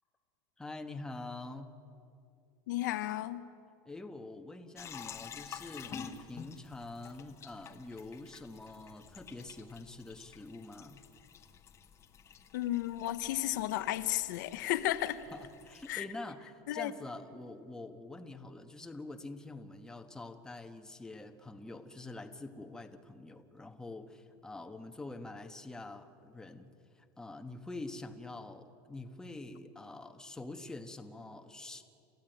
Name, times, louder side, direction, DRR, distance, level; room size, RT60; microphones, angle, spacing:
voice 1, 0.6-1.7 3.8-11.0 15.3-31.8, left 2 dB, 5° left, 6 dB, 1.3 m, -46 dB
voice 2, 2.7-3.4 12.5-15.2 15.9-16.1 16.7-16.9, left 14 dB, 85° left, 11 dB, 1.0 m, -33 dB
sound 1, 4.8-15.9, left 7 dB, 30° left, 1.3 m, -50 dB
29.5 x 14.5 x 9.2 m, 2.5 s
supercardioid pair, 140°, 10 cm